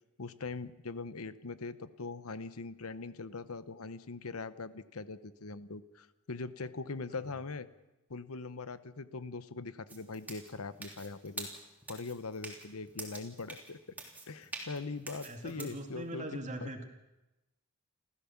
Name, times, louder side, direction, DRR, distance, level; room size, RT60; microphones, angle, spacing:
voice 1, 0.2-7.7 8.1-11.5 11.9-13.8 14.3-16.3 16.6-16.7, left 3 dB, 85° left, 14 dB, 1.0 m, -41 dB
sound 1, 9.9-15.8, right 2 dB, 10° right, 3.4 m, -46 dB
voice 2, 15.2-16.8, right 1 dB, 35° right, 4 dB, 2.5 m, -41 dB
29.0 x 14.0 x 7.3 m, 1.0 s
head